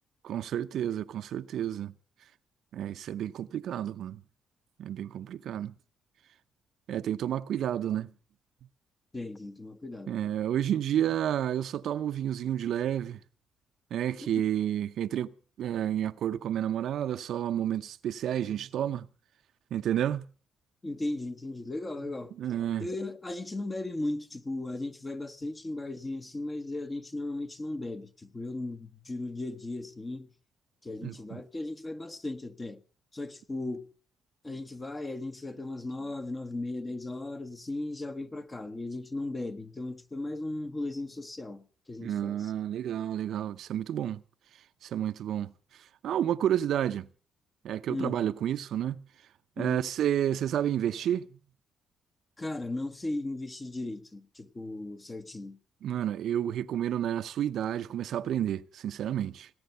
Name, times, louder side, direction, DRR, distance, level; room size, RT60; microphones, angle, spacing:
voice 1, 0.2-1.9 2.7-4.2 4.8-5.7 6.9-8.1 10.1-13.2 13.9-15.3 15.6-19.1 19.7-20.3 22.4-22.9 31.0-31.4 42.0-44.2 44.8-45.5 46.0-47.1 47.6-49.0 49.6-51.3 55.8-59.5, right 10 dB, 70° right, 0.7 m, -30 dB
voice 2, 9.1-10.1 14.2-14.3 20.8-22.4 22.8-30.3 30.8-32.8 33.1-33.9 34.4-42.5 47.9-48.2 49.6-49.9 52.4-55.6, left 2 dB, 25° left, 1.2 m, -36 dB
18.5 x 9.5 x 6.7 m
cardioid pair, 90°, 0 cm